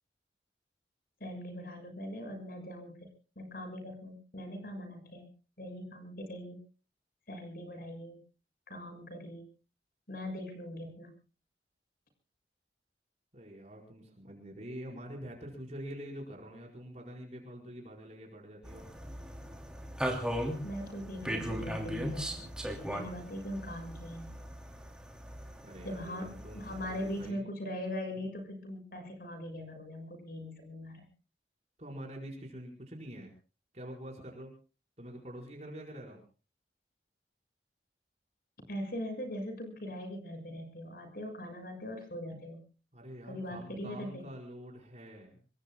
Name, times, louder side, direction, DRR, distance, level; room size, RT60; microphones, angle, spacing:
voice 1, 1.2-3.1 3.3-5.3 5.6-6.6 7.3-8.2 8.7-9.4 10.1-11.2 20.6-22.5 22.9-24.4 25.8-31.0 38.7-42.7 43.3-44.3, equal, 55° left, 6 dB, 6.9 m, -41 dB
voice 2, 13.3-18.8 25.6-27.4 31.8-33.3 33.7-34.5 35.0-36.2 42.9-45.4, equal, 40° right, -1 dB, 5.0 m, -46 dB
sound 1, 18.6-27.3, equal, 5° right, 3.0 m, -38 dB
26.5 x 22.5 x 2.3 m, 0.36 s
head